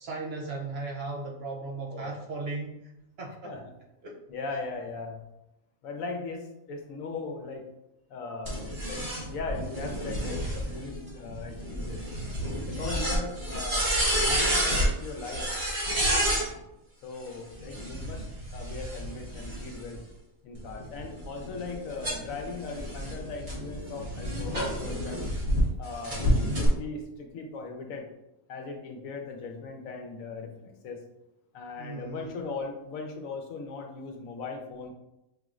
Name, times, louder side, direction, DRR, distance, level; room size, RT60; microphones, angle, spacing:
voice 1, 0.0-2.9 3.2-3.5 4.0-4.2 16.1-16.6 31.8-32.3, right 3 dB, 60° right, -1 dB, 0.7 m, -37 dB
voice 2, 4.3-5.2 5.8-7.6 8.1-9.0 9.3-12.0 12.6-15.4 17.0-18.2 18.5-20.0 20.4-25.2 25.8-28.0 28.5-31.0 31.5-34.9, left 4 dB, 75° left, 3 dB, 1.1 m, -38 dB
sound 1, 8.5-16.5 17.6-20.0 20.5-25.6 26.0-26.7, equal, 45° right, 1.7 m, -30 dB
5.6 x 3.0 x 2.4 m, 0.89 s
omnidirectional pair, 1.5 m